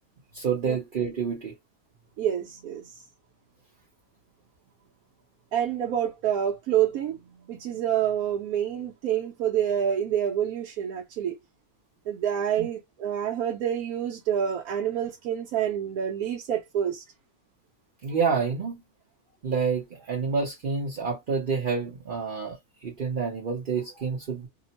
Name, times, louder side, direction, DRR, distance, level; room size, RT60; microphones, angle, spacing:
voice 1, 0.3-1.5 12.6-12.7 18.0-18.8 19.4-24.5, right 5 dB, 45° right, 0.9 m, -28 dB
voice 2, 2.2-2.9 5.5-7.2 7.5-11.4 12.1-17.0, right 9 dB, 80° right, 1.1 m, -27 dB
2.9 x 2.0 x 2.8 m
omnidirectional pair, 1.6 m